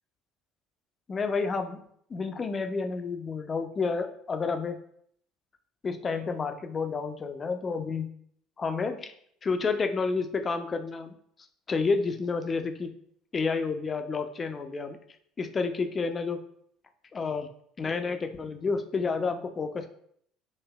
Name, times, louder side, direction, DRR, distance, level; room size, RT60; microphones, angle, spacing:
voice 1, 1.1-1.8 2.1-4.8 5.8-8.1 8.6-9.1 9.4-11.2 11.7-12.9 13.3-15.0 15.4-16.4 17.1-17.5 17.8-19.9, left 4 dB, 30° left, 6 dB, 0.5 m, -30 dB
6.5 x 2.6 x 2.3 m, 0.66 s
hypercardioid pair, 60°, 0 cm